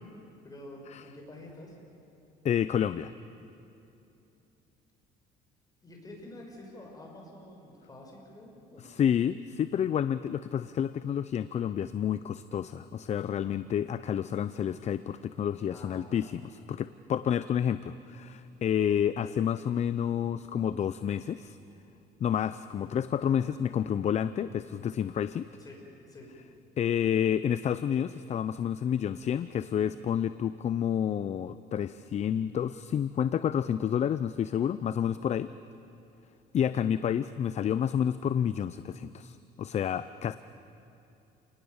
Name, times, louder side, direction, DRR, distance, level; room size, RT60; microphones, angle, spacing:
voice 1, 0.4-1.7 5.8-9.0 15.7-16.3 25.6-25.8 26.1-26.3, left 1 dB, 20° left, 0 dB, 6.7 m, -48 dB
voice 2, 2.4-3.1 8.8-21.6 22.2-25.5 26.8-35.5 36.5-40.4, left 9 dB, 40° left, 14 dB, 0.6 m, -29 dB
30.0 x 20.0 x 7.2 m, 2.8 s
cardioid pair, 110°, 17 cm